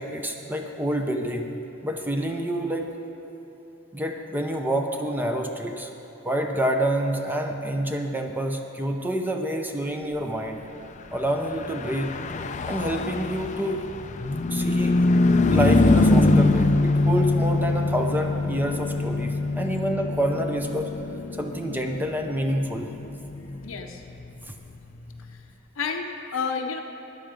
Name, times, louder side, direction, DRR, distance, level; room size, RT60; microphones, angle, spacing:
voice 1, 0.0-1.5 1.8-2.9 3.9-5.9 6.2-10.6 11.1-12.1 12.7-13.8 14.5-15.0 15.5-20.9 21.4-22.9, right 1 dB, 10° right, 4 dB, 0.6 m, -27 dB
Car passing by / Truck, 11.4-25.2, left 2 dB, 35° left, 0.4 m, -24 dB
voice 2, 23.4-24.0 25.3-25.4 25.8-26.8, left 5 dB, 65° left, 3 dB, 0.7 m, -31 dB
14.0 x 10.5 x 5.1 m, 2.9 s
head